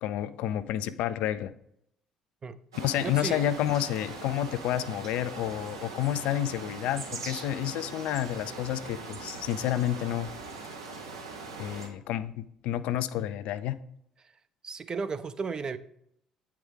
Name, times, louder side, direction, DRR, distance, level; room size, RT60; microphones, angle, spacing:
voice 1, 0.0-1.5 2.8-10.3 11.6-13.8, left 12 dB, 60° left, 0.3 m, -30 dB
sound 1, 2.7-11.9, right 4 dB, 85° right, 0.9 m, -41 dB
voice 2, 3.0-3.4 11.7-11.8 14.6-15.8, right 5 dB, 35° right, 0.5 m, -34 dB
8.5 x 4.7 x 3.7 m
figure-of-eight pair, 50°, 2 cm